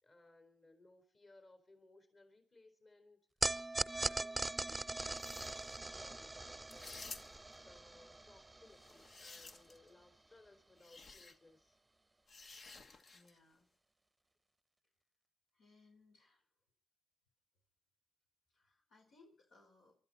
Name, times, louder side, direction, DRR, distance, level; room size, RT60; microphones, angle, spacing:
voice 1, 0.0-3.2 3.9-7.0 7.5-11.8, left 2 dB, 45° left, 7 dB, 4.6 m, -64 dB
sound 1, 3.4-9.8, right 2 dB, 20° right, 0.7 m, -41 dB
sound 2, 5.1-5.8 6.7-7.6 8.7-9.9 10.8-11.3 12.3-13.4, left 3 dB, 60° left, 1.5 m, -53 dB
voice 2, 13.1-13.7 15.5-16.4 18.5-20.0, left 3 dB, 80° left, 1 dB, 4.6 m, -66 dB
24.0 x 13.5 x 4.2 m, 0.37 s
cardioid pair, 55°, 0 cm